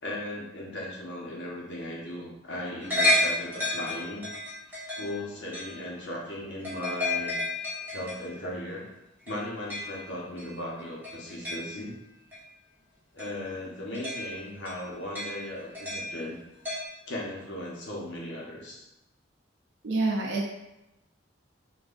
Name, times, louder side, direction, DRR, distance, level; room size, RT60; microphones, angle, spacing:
voice 1, 0.0-4.3 4.9-7.4 7.9-8.8 9.2-12.0 13.1-16.4 17.1-18.9, left 1 dB, 65° left, -3 dB, 1.1 m, -37 dB
sound 1, 2.8-6.0 6.6-8.3 9.3-10.1 10.4-11.9 12.3-12.4 13.2-13.4 13.9-16.4 16.7-16.9, left 1 dB, 10° right, 1.1 m, -31 dB
voice 2, 19.8-20.5, right 2 dB, 65° right, -1 dB, 0.5 m, -27 dB
5.5 x 2.6 x 2.5 m, 0.92 s
head